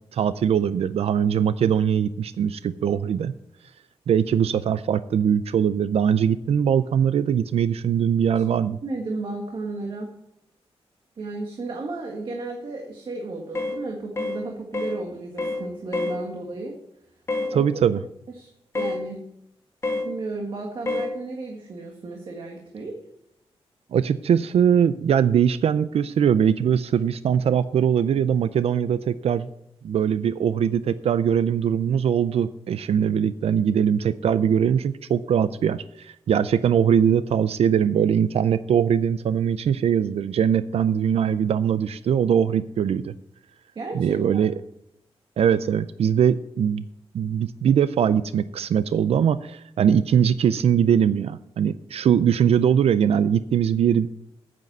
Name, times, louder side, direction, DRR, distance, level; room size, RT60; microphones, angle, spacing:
voice 1, 0.1-3.3 4.1-8.8 17.5-18.0 23.9-29.5 29.8-43.1 43.9-44.5 45.4-46.8 47.1-54.1, right 8 dB, 75° right, 14 dB, 0.4 m, -21 dB
voice 2, 8.8-10.1 11.2-16.7 17.4-17.6 18.4-18.5 18.7-19.2 20.0-22.9 43.7-44.5, right 3 dB, 50° right, 1 dB, 1.6 m, -33 dB
sound 1, 13.6-13.8 14.2-14.4 14.7-15.0 15.4-15.6 15.9-16.2 17.3-17.5 18.8-19.0 19.8-20.1 20.9-21.1, left 2 dB, 25° left, 1.6 m, -27 dB
9.4 x 7.5 x 7.9 m, 0.79 s
wide cardioid pair, 175°, 11 cm